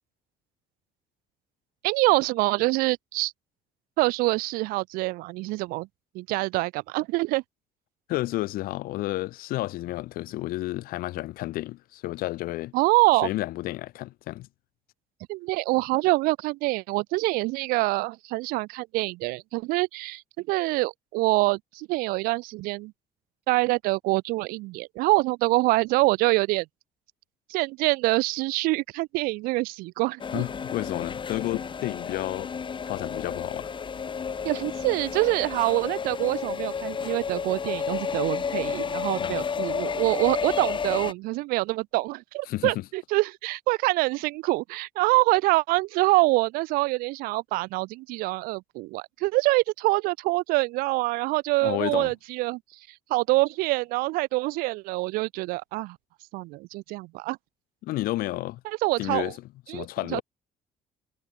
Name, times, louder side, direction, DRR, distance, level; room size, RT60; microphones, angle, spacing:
voice 1, 1.8-3.3 4.0-5.9 6.1-7.4 12.7-13.3 15.3-20.2 20.5-22.9 23.5-26.7 27.5-30.4 34.4-52.6 53.1-56.0 56.3-57.4 58.6-59.3 59.7-60.2, right 22 dB, 85° right, 0.5 m, -25 dB
voice 2, 8.1-12.7 13.2-14.5 30.3-32.5 32.9-33.7 39.2-39.4 42.5-42.8 51.6-52.1 57.8-58.6 59.0-59.4 59.7-60.2, left 17 dB, 80° left, 2.0 m, -31 dB
sound 1, 30.2-41.1, left 6 dB, 35° left, 0.7 m, -31 dB
supercardioid pair, 65°, 15 cm